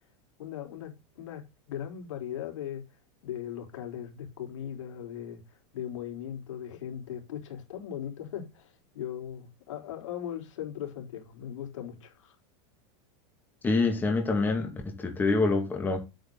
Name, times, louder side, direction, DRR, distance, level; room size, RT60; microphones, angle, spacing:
voice 1, 0.4-2.8 3.2-12.4, left 10 dB, 90° left, 4.2 m, -39 dB
voice 2, 13.6-16.0, left 3 dB, 10° left, 2.2 m, -26 dB
9.7 x 8.8 x 4.0 m
supercardioid pair, 155°, 15 cm